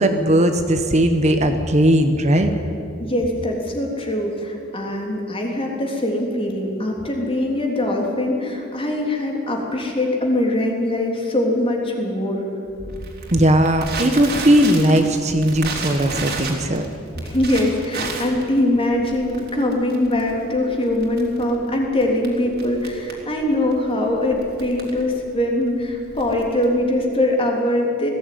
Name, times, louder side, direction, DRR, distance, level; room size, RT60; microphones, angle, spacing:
voice 1, 0.0-2.5 13.3-16.8, right 1 dB, 35° right, 6 dB, 1.2 m, -17 dB
voice 2, 3.0-12.4 17.2-28.1, left 1 dB, 25° left, 0 dB, 3.4 m, -22 dB
Crackle, 12.8-27.0, right 3 dB, 50° right, 3.7 m, -33 dB
19.5 x 15.5 x 9.5 m, 2.6 s
head